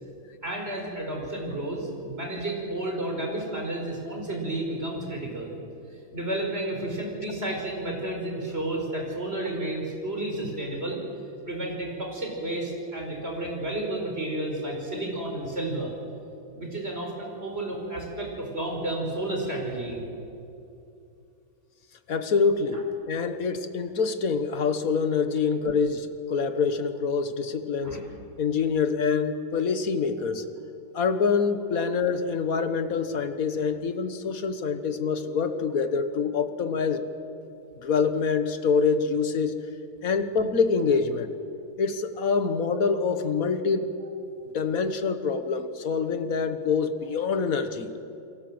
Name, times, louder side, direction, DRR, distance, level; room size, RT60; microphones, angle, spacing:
voice 1, 0.4-5.6 6.1-11.0 11.4-15.9 16.5-20.0 22.7-22.8 27.8-28.0, right 1 dB, 30° right, 0 dB, 5.7 m, -31 dB
voice 2, 22.1-28.1 28.4-30.4 30.9-37.1 37.8-39.6 40.0-41.3 41.8-43.9 44.5-47.9, left 5 dB, 45° left, 9 dB, 1.6 m, -26 dB
29.0 x 23.5 x 7.8 m, 2.7 s
omnidirectional pair, 2.2 m